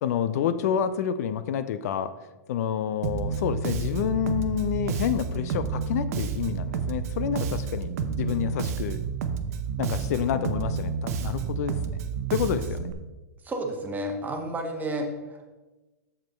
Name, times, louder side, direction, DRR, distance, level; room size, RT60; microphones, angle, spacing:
voice 1, 0.0-2.1 2.5-7.9 8.2-9.0 9.8-12.0 12.3-12.9, left 9 dB, 65° left, 13 dB, 0.4 m, -28 dB
Bass guitar, 3.0-12.9, right 6 dB, 60° right, 0.7 m, -30 dB
voice 2, 13.4-15.4, right 1 dB, 20° right, 2 dB, 1.3 m, -31 dB
7.3 x 5.1 x 4.4 m, 1.2 s
hypercardioid pair, 115°, 9 cm